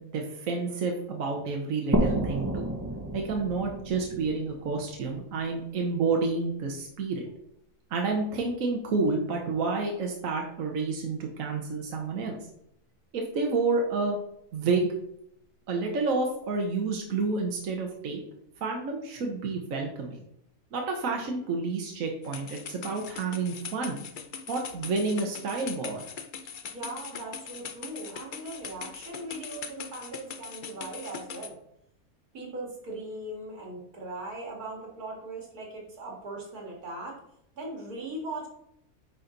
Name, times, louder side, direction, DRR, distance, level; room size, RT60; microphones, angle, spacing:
voice 1, 0.0-2.6 3.1-7.3 7.9-12.4 13.1-14.2 14.5-14.9 15.7-18.2 18.6-20.2 20.7-24.0 24.5-26.0, right 4 dB, 65° right, 1 dB, 1.4 m, -29 dB
sound 1, 1.9-5.4, right 1 dB, 20° right, 0.4 m, -30 dB
sound 2, 22.2-31.5, left 7 dB, 55° left, 0.5 m, -41 dB
voice 2, 26.6-31.6 32.3-37.2 37.5-38.5, right 2 dB, 90° right, -1 dB, 2.7 m, -39 dB
9.6 x 4.2 x 3.9 m, 0.76 s
omnidirectional pair, 1.5 m